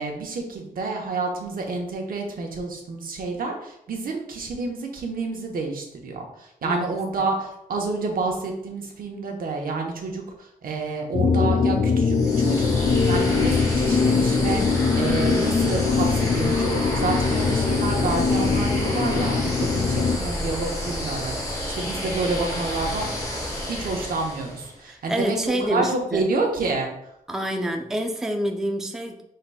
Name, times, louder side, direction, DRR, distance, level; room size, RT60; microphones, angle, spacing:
voice 1, 0.0-23.1 23.7-26.9, right 3 dB, 75° right, 1 dB, 1.0 m, -29 dB
sound 1, 11.1-20.2, left 4 dB, 60° left, 0.5 m, -22 dB
sound 2, 12.1-24.8, left 1 dB, 25° left, 1.2 m, -30 dB
voice 2, 24.9-26.3 27.3-29.2, equal, 5° right, 3 dB, 0.4 m, -27 dB
5.5 x 3.8 x 2.3 m, 0.77 s
wide cardioid pair, 140°, 15 cm